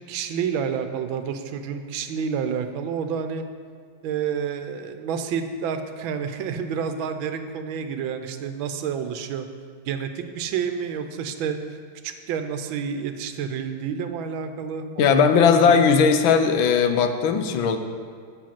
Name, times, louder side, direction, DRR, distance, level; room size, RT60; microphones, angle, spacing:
voice 1, 0.0-3.4 4.0-9.5 9.9-11.6 12.0-15.8, right 7 dB, 80° right, 8 dB, 1.4 m, -29 dB
voice 2, 15.0-17.8, left 6 dB, 80° left, 7 dB, 1.4 m, -18 dB
7.5 x 7.2 x 5.8 m, 2.1 s
omnidirectional pair, 2.2 m